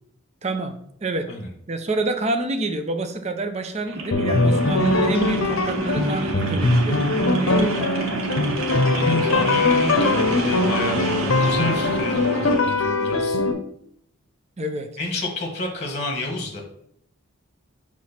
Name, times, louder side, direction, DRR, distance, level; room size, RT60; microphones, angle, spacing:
voice 1, 0.4-0.7 1.0-1.3 1.7-7.0 7.4-8.2 14.6-14.9, right 2 dB, 30° right, 6 dB, 0.5 m, -27 dB
sound 1, 3.8-12.7, right 2 dB, 70° right, 1.0 m, -29 dB
sound 2, 4.1-13.5, left 2 dB, 70° left, 0.7 m, -21 dB
voice 2, 8.9-13.4 15.0-16.6, left 2 dB, 30° left, 2 dB, 1.1 m, -30 dB
6.0 x 3.1 x 5.8 m, 0.70 s
head